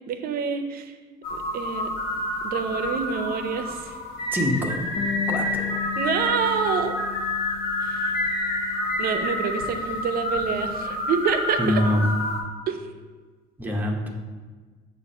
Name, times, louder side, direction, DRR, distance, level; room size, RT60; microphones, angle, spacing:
voice 1, 0.1-0.9 1.3-1.9 2.4-3.9 6.0-6.9 7.8-8.2 9.0-11.8 12.7-12.8, right 6 dB, 60° right, 8 dB, 0.6 m, -27 dB
sound 1, 1.2-12.4, left 1 dB, 65° left, 0.9 m, -28 dB
voice 2, 4.3-4.8 5.3-5.8 11.6-12.1 13.6-14.1, equal, 10° right, 0 dB, 0.9 m, -24 dB
Bass guitar, 5.0-11.2, left 13 dB, 30° left, 0.3 m, -36 dB
6.9 x 2.5 x 5.4 m, 1.4 s
cardioid pair, 110°, 17 cm